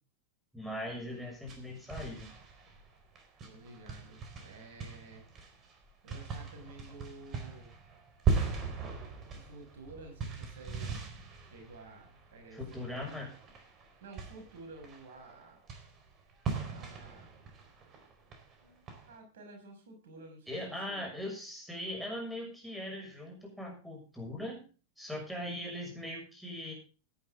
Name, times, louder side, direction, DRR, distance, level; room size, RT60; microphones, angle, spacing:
voice 1, 0.5-2.3 12.5-13.3 20.5-24.6 25.0-26.7, left 1 dB, ahead, 1 dB, 6.6 m, -40 dB
sound 1, 1.1-19.2, right 5 dB, 30° right, 4.3 m, -39 dB
voice 2, 3.4-5.3 6.0-7.7 9.3-11.1 11.4-13.1 14.0-15.6 16.7-17.3 18.6-21.2, right 2 dB, 60° right, 3 dB, 6.1 m, -51 dB
17.0 x 11.0 x 3.7 m, 0.35 s
figure-of-eight pair, 90°, 0 cm